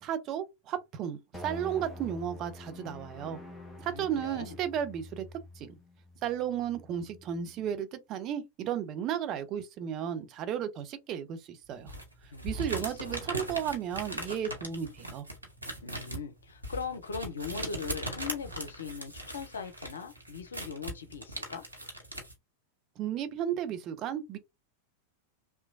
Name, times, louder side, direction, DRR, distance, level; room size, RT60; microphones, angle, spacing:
voice 1, 0.0-3.4 3.8-5.2 5.6-5.7 6.2-11.9 12.4-15.2 23.0-24.4, right 9 dB, 35° right, 0.5 m, -34 dB
sound 1, 1.3-7.8, left 2 dB, 5° left, 0.8 m, -47 dB
voice 2, 3.9-4.6 12.3-13.1 15.8-21.7, left 6 dB, 70° left, 0.5 m, -40 dB
sound 2, 11.9-22.3, right 1 dB, 85° right, 0.8 m, -39 dB
2.9 x 2.2 x 2.5 m
figure-of-eight pair, 90°, 0 cm